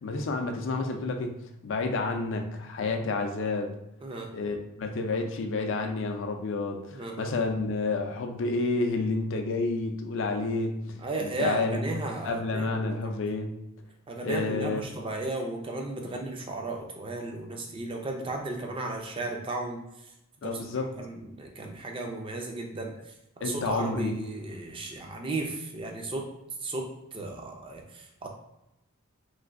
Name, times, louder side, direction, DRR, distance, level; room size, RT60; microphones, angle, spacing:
voice 1, 0.0-3.7 4.3-10.7 11.2-11.8 12.2-13.5 14.2-14.8 20.4-20.9 23.4-24.2, left 3 dB, 60° left, 4 dB, 0.4 m, -30 dB
voice 2, 6.9-7.3 11.0-13.2 14.1-19.8 20.4-20.6 21.0-23.1 23.4-26.3 26.6-28.3, right 2 dB, 25° right, 2 dB, 0.4 m, -35 dB
3.1 x 2.6 x 2.5 m, 0.88 s
head